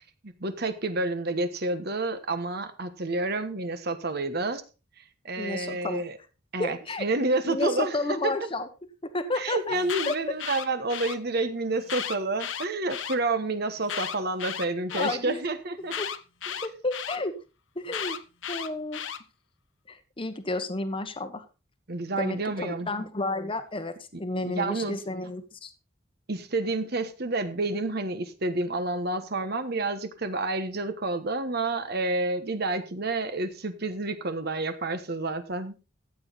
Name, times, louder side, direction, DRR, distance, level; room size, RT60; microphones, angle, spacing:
voice 1, 0.2-4.6 5.2-6.2 6.5-8.3 9.3-16.0 16.5-16.6 21.9-22.9 24.4-25.0 26.3-35.8, right 2 dB, 55° right, 10 dB, 1.2 m, -29 dB
voice 2, 5.4-6.0 6.6-7.1 7.4-8.7 9.0-9.8 10.1-10.4 13.9-14.0 14.9-15.4 16.0-16.1 16.6-17.3 17.8-18.2 18.5-19.0 19.9-21.4 22.2-25.7, left 2 dB, 25° left, 8 dB, 1.0 m, -31 dB
Alarm, 9.7-11.2 11.8-13.2 13.8-15.2 15.9-17.2 17.9-19.2, left 8 dB, 70° left, 1.0 m, -34 dB
14.0 x 8.1 x 4.0 m, 0.31 s
head